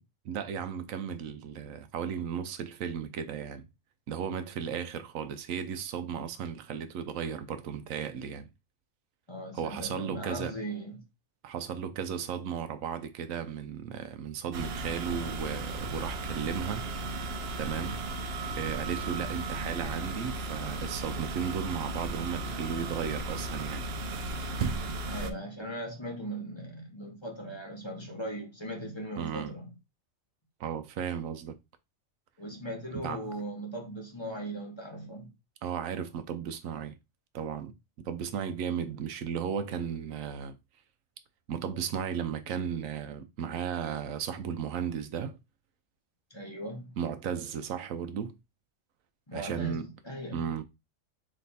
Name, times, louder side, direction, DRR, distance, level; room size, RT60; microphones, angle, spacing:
voice 1, 0.2-3.7 4.1-8.5 9.5-10.5 11.4-16.9 17.6-18.0 18.6-23.8 29.2-29.5 30.6-31.6 32.9-33.2 35.6-36.9 37.3-37.7 38.0-40.6 41.5-45.4 47.0-48.4 49.3-49.9 50.3-50.6, right 8 dB, 90° right, 1.1 m, -35 dB
voice 2, 9.3-11.0 25.1-29.7 32.4-35.3 46.3-46.9 49.3-50.6, right 1 dB, 25° left, 0.8 m, -39 dB
sound 1, 14.5-25.3, right 2 dB, 60° right, 0.7 m, -35 dB
3.4 x 3.1 x 4.0 m
omnidirectional pair, 1.3 m